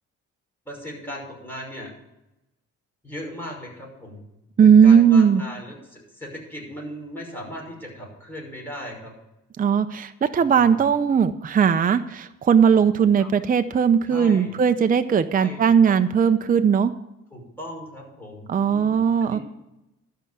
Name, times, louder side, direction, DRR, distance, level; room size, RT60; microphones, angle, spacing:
voice 1, 0.7-1.9 3.0-4.2 4.6-9.1 10.3-10.8 13.2-13.3 14.1-14.5 15.3-15.9 17.3-19.4, equal, 5° left, -3 dB, 5.8 m, -38 dB
voice 2, 4.6-5.4 9.6-16.9 18.5-19.4, right 7 dB, 30° right, 9 dB, 0.6 m, -18 dB
13.0 x 5.6 x 9.4 m, 0.92 s
cardioid pair, 90°, 30 cm